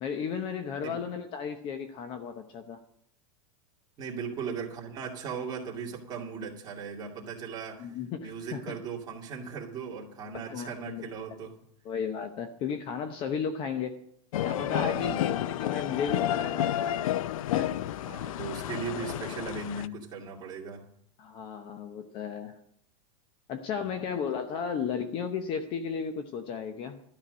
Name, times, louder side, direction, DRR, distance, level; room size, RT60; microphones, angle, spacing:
voice 1, 0.0-2.8 7.8-8.7 10.3-11.1 11.8-14.0 14.4-17.0 17.5-17.8 21.2-22.6 23.5-27.0, left 6 dB, 30° left, 8 dB, 0.8 m, -34 dB
voice 2, 4.0-7.9 8.2-11.5 14.9-15.5 18.0-20.8 23.8-24.0, right 5 dB, 20° right, -2 dB, 2.5 m, -38 dB
sound 1, 14.3-19.9, left 12 dB, 85° left, 0.5 m, -30 dB
12.5 x 5.9 x 9.4 m, 0.70 s
supercardioid pair, 160°, 17 cm